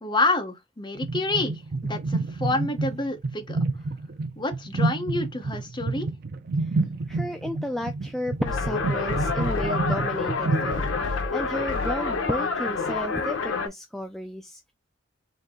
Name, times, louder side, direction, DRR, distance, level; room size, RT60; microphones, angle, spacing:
voice 1, 0.0-3.6 4.4-6.1, left 2 dB, 25° left, 0.8 m, -28 dB
sound 1, 1.0-11.1, right 3 dB, 55° right, 0.5 m, -29 dB
voice 2, 7.1-14.7, equal, ahead, 0.3 m, -33 dB
sound 2, 8.5-13.7, left 4 dB, 70° left, 0.8 m, -27 dB
4.0 x 2.7 x 3.6 m
head